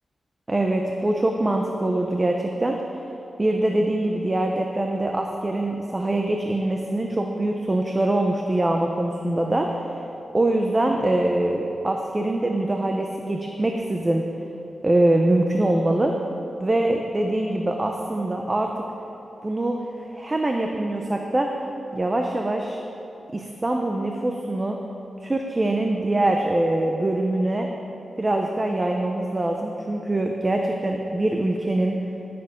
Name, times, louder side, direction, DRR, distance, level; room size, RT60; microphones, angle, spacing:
voice 1, 0.5-2.8 3.4-9.8 10.3-14.2 14.8-16.1 16.6-18.7 19.4-21.6 21.9-22.8 23.3-24.8 25.2-27.7 28.2-32.0, right 1 dB, 20° right, 2 dB, 0.6 m, -23 dB
16.5 x 6.9 x 5.1 m, 2.9 s
wide cardioid pair, 155°, 0 cm